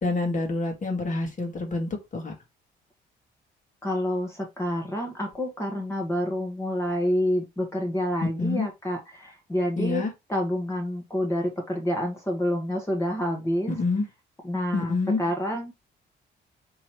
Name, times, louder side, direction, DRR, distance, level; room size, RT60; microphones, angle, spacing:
voice 1, 0.0-2.3 8.2-8.7 9.8-10.1 13.7-14.1 14.7-15.2, left 3 dB, 40° left, 2.0 m, -27 dB
voice 2, 3.8-10.0 10.3-13.7 14.4-15.7, equal, 15° left, 1.5 m, -28 dB
3.7 x 3.2 x 4.5 m
cardioid pair, 90°, 20 cm